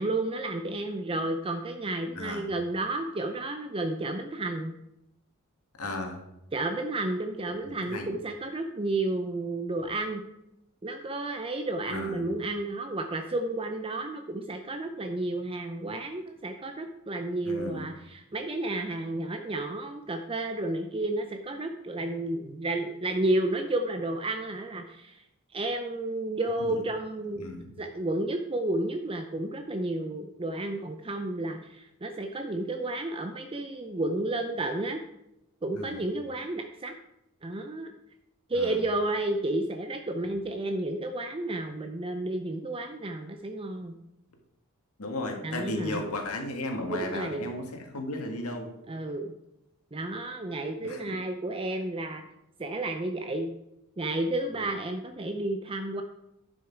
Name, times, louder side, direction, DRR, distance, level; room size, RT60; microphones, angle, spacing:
voice 1, 0.0-4.7 6.5-10.2 10.8-25.2 25.5-27.5 27.8-35.0 35.6-36.9 37.4-37.9 38.5-44.0 45.4-46.0 46.9-47.5 48.9-49.3 49.9-52.2 52.6-53.5 54.0-56.0, right 2 dB, 25° right, 5 dB, 0.6 m, -31 dB
voice 2, 2.1-2.5 5.8-6.2 7.7-8.1 11.9-12.3 17.4-17.9 26.7-26.8 27.4-27.7 35.7-36.0 38.5-38.8 45.0-48.7 50.8-51.2 51.7-51.8 54.5-54.7, left 2 dB, 80° left, 3 dB, 1.9 m, -35 dB
11.0 x 6.3 x 4.6 m, 0.86 s
head